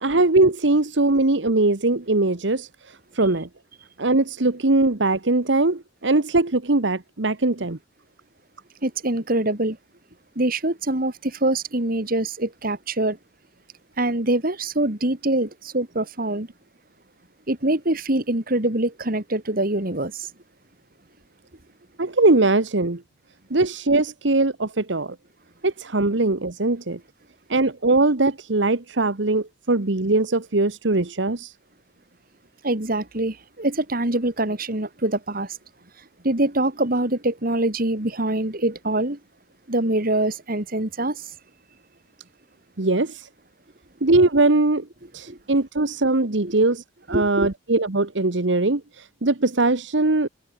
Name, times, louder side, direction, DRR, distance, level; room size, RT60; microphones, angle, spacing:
voice 1, 0.0-3.5 4.0-7.8 22.0-23.0 23.5-25.1 25.6-27.0 27.5-31.5 42.8-43.3 44.0-44.9 45.1-50.3, right 2 dB, 70° right, 1.4 m, -21 dB
voice 2, 8.8-9.8 10.4-13.2 14.0-16.5 17.5-20.3 32.6-35.6 36.2-39.2 39.7-41.3 45.3-45.4 46.4-46.6 47.1-47.5, right 1 dB, 50° right, 2.8 m, -24 dB
head